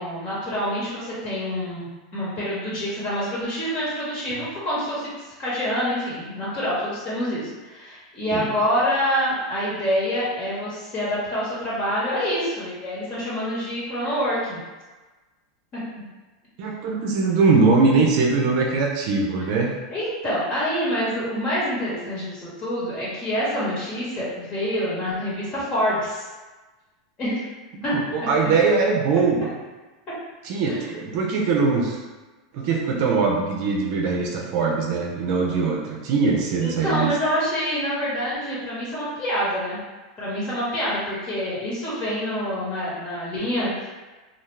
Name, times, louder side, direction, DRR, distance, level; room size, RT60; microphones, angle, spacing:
voice 1, 0.0-5.1 5.4-14.6 15.7-15.8 19.9-26.2 27.2-27.4 27.8-27.9 30.7-30.8 36.6-39.8 40.2-43.9, equal, 35° left, -8 dB, 1.4 m, -26 dB
voice 2, 16.6-19.7 27.9-29.5 30.4-32.0 32.5-37.1, right 4 dB, 50° right, -1 dB, 0.5 m, -21 dB
2.4 x 2.3 x 3.2 m, 1.2 s
supercardioid pair, 140°, 3 cm